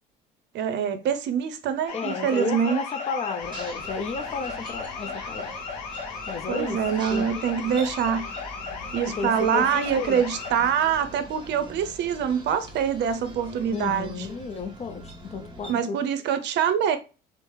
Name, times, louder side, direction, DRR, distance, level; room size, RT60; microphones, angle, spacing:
voice 1, 0.5-2.8 6.5-8.2 8.9-14.3 15.7-17.0, right 8 dB, 55° right, 0.6 m, -25 dB
sound 1, 1.9-10.5, left 5 dB, 85° left, 0.6 m, -35 dB
voice 2, 1.9-5.6 6.3-6.8 7.1-7.3 7.6-7.8 9.1-10.3 13.7-16.0, left 4 dB, 30° left, 0.4 m, -32 dB
sound 2, 3.4-15.7, right 1 dB, 20° right, 1.0 m, -43 dB
2.9 x 2.0 x 3.1 m
hypercardioid pair, 65°, 21 cm